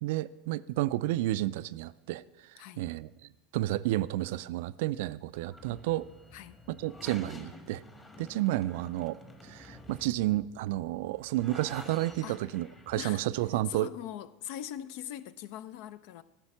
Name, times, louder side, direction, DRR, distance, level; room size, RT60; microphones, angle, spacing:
voice 1, 0.0-2.2 2.8-3.1 3.5-6.1 6.7-7.8 8.2-9.2 9.4-13.9, right 16 dB, 60° right, 0.3 m, -31 dB
sound 1, 5.3-13.1, left 2 dB, 20° left, 1.4 m, -50 dB
voice 2, 13.0-13.3 13.7-16.2, left 11 dB, 55° left, 0.5 m, -41 dB
13.5 x 5.6 x 7.1 m
figure-of-eight pair, 75°, 0 cm